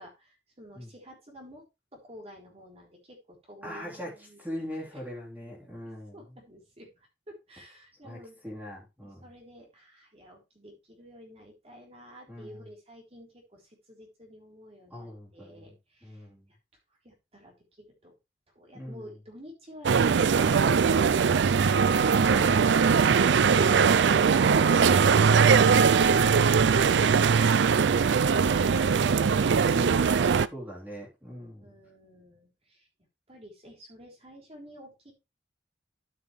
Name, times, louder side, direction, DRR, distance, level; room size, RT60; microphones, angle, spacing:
voice 1, 0.0-1.6 1.9-4.4 4.9-5.0 6.1-8.4 9.0-16.6 16.9-18.1 18.5-23.9 31.6-32.9 33.3-35.1, equal, 35° right, 3.9 m, -51 dB
voice 2, 3.6-4.1 4.4-6.4 8.0-8.2 8.4-9.2 12.3-12.7 14.9-15.7 16.0-16.5 18.7-19.1 22.3-23.0 29.5-30.1 30.5-31.8, equal, 10° right, 3.4 m, -41 dB
sound 1, 19.8-30.5, right 6 dB, 70° right, 0.4 m, -21 dB
13.0 x 5.8 x 3.2 m
head